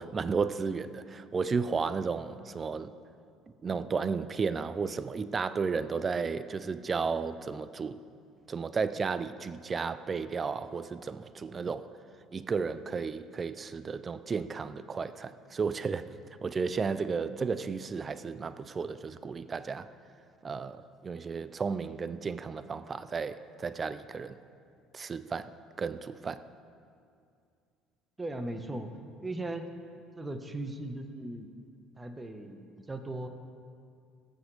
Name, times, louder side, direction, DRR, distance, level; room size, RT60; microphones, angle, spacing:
voice 1, 0.0-2.9 3.6-8.0 8.5-11.9 12.3-16.0 16.4-19.9 20.4-24.4 24.9-25.5 25.8-26.5, right 5 dB, 35° right, 0.5 m, -33 dB
voice 2, 28.2-28.9 29.2-29.7 30.2-31.5 32.0-33.3, right 2 dB, 20° right, 1.3 m, -38 dB
18.5 x 8.6 x 3.5 m
hypercardioid pair, 60°, 0 cm